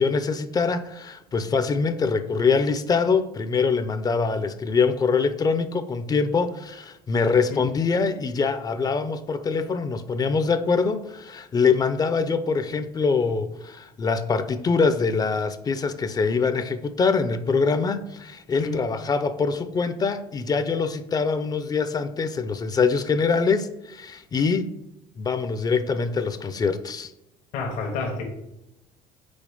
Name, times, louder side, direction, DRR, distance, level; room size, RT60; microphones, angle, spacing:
voice 1, 0.0-24.7 25.2-27.1, left 5 dB, 30° left, 0.5 m, -24 dB
voice 2, 27.5-28.2, left 3 dB, 80° left, 1.4 m, -29 dB
5.2 x 4.1 x 5.3 m
supercardioid pair, 100°, 14 cm